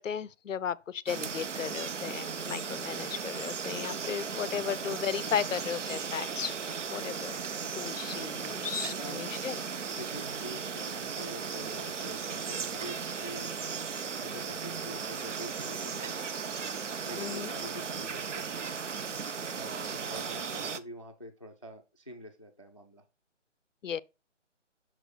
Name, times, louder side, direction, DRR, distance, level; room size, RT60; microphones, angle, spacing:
voice 1, 0.0-6.6 6.9-7.4 7.7-9.6 17.2-17.5 23.8-24.0, left 8 dB, 85° left, 0.5 m, -35 dB
sound 1, 1.1-20.8, right 6 dB, 70° right, 0.7 m, -36 dB
voice 2, 8.9-9.4 9.9-13.6 14.2-16.3 17.0-18.8 19.5-23.0, equal, 30° left, 0.4 m, -46 dB
6.6 x 5.9 x 3.1 m
figure-of-eight pair, 145°, 37 cm